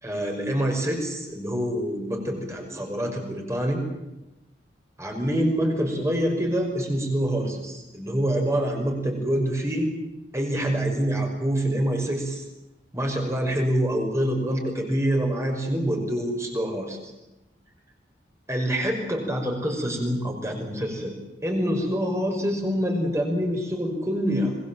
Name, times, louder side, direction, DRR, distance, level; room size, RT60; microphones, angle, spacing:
voice 1, 0.0-3.8 5.0-9.9 10.3-12.4 12.9-17.1 18.5-21.1 21.4-24.6, equal, 15° right, 2 dB, 5.7 m, -26 dB
26.0 x 21.0 x 7.8 m, 0.99 s
head